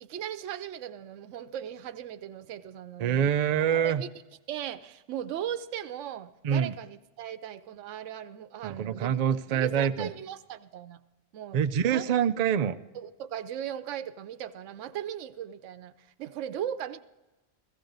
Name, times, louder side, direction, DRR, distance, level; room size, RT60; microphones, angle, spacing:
voice 1, 0.0-3.3 3.6-4.1 4.5-9.1 9.5-11.0 11.3-11.6 11.8-12.1 12.9-17.0, right 10 dB, 80° right, 1.0 m, -38 dB
voice 2, 3.0-4.0 6.4-6.7 8.6-10.1 11.5-12.8, right 8 dB, 60° right, 0.4 m, -25 dB
15.0 x 15.0 x 3.9 m
omnidirectional pair, 1.3 m